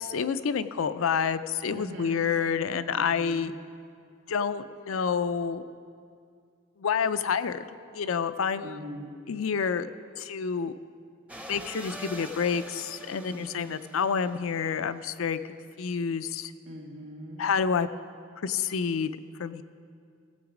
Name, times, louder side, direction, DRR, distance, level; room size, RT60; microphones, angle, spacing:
voice 1, 0.0-3.5 4.3-5.6 6.8-7.6 7.9-8.8 9.3-9.9 10.2-10.7 11.5-16.5 17.4-17.9 18.4-19.1 19.4-19.6, left 6 dB, 85° left, 12 dB, 0.5 m, -28 dB
voice 2, 1.7-2.2 2.9-3.4 8.6-9.2 13.3-13.9 16.7-17.4, equal, 65° right, 0 dB, 2.2 m, -42 dB
sound 1, 11.3-14.8, equal, 5° right, 0.6 m, -44 dB
16.0 x 7.9 x 5.0 m, 2.3 s
head